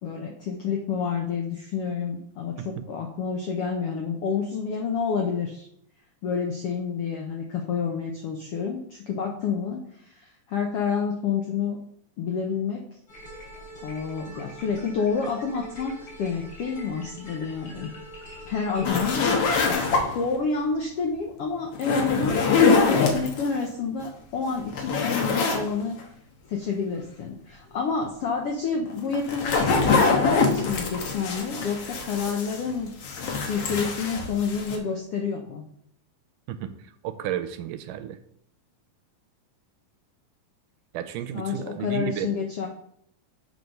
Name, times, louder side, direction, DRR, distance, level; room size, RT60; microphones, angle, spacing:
voice 1, 0.0-5.7 6.2-11.8 12.2-12.9 13.8-17.9 18.4-19.2 19.6-26.0 26.5-29.6 29.9-32.9 33.5-35.6 41.3-42.7, left 5 dB, 80° left, 1 dB, 1.3 m, -29 dB
Mi-Go - Supercollider, 13.1-19.7, equal, 30° left, 3.6 m, -43 dB
sound 1, 18.8-20.3 21.7-23.5 24.0-24.1 24.5-25.7 26.0-26.1 28.9-32.7 33.0-34.8, left 4 dB, 60° left, 1.7 m, -24 dB
voice 2, 37.0-38.2 40.9-42.3, right 11 dB, 80° right, 9 dB, 2.1 m, -32 dB
8.1 x 4.9 x 5.3 m, 0.69 s
omnidirectional pair, 3.9 m